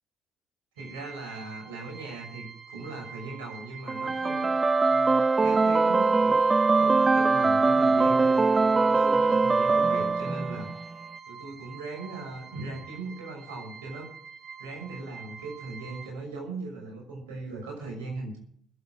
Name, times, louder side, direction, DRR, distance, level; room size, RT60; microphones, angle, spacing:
voice 1, 0.7-4.6 4.9-10.7 11.3-14.1 14.6-18.4, right 3 dB, 75° right, 1 dB, 6.1 m, -39 dB
sound 1, 0.8-16.1, right 6 dB, 50° right, 1.8 m, -46 dB
sound 2, 3.9-10.8, right 3 dB, 25° right, 0.5 m, -22 dB
21.0 x 8.4 x 5.9 m, 0.62 s
figure-of-eight pair, 50°, 0 cm